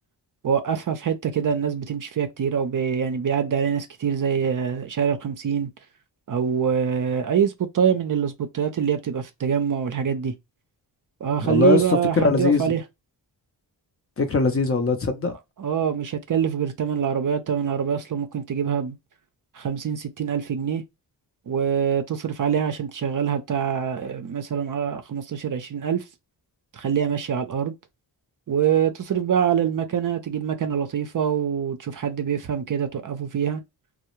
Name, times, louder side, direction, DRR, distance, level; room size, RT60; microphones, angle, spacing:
voice 1, 0.4-5.7 6.3-10.3 11.2-12.8 15.6-19.0 19.5-20.8 21.5-26.0 26.7-27.7 28.5-33.6, right 7 dB, 45° right, 0.5 m, -24 dB
voice 2, 11.4-11.8 12.2-12.6 14.2-15.3, left 4 dB, 30° left, 0.6 m, -20 dB
2.2 x 2.0 x 3.0 m
cardioid pair, 50°, 46 cm